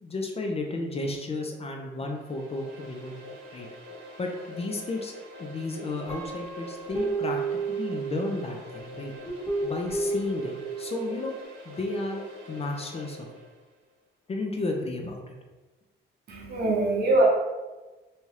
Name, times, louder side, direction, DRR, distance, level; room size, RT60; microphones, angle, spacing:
voice 1, 0.0-3.2 3.5-3.7 4.2-5.1 5.4-7.4 7.7-9.1 9.6-11.3 11.7-13.3 14.3-15.4, left 2 dB, 30° left, 2 dB, 0.4 m, -33 dB
sound 1, 2.0-13.6, left 1 dB, 90° right, 0.8 m, -45 dB
Guitar, 6.1-8.5 9.2-11.2, right 3 dB, 10° left, 1.0 m, -32 dB
voice 2, 16.3-17.3, right 2 dB, 55° right, -3 dB, 0.9 m, -23 dB
2.8 x 2.3 x 3.2 m, 1.2 s
cardioid pair, 90°, 20 cm